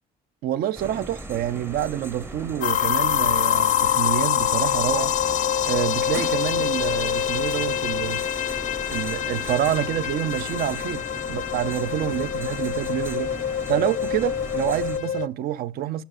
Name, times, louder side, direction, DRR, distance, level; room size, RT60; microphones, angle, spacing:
voice 1, 0.4-5.2 5.7-8.2 8.9-13.3 13.7-16.0, right 12 dB, 65° right, 0.5 m, -27 dB
sound 1, 0.7-15.0, right 1 dB, 15° right, 0.7 m, -38 dB
sound 2, 2.6-15.3, left 10 dB, 50° left, 0.4 m, -25 dB
11.5 x 5.6 x 2.5 m
cardioid pair, 110°, 17 cm